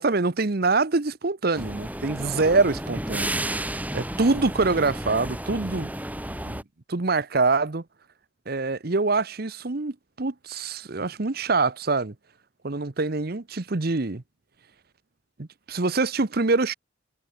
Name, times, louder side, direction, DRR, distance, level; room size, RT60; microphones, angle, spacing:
voice 1, 0.0-5.9 6.4-6.6 6.9-7.8 8.5-12.1 12.6-14.2 15.4-16.7, right 3 dB, 50° right, 0.9 m, -25 dB
sound 1, 1.5-6.6, right 1 dB, 10° right, 4.0 m, -32 dB
head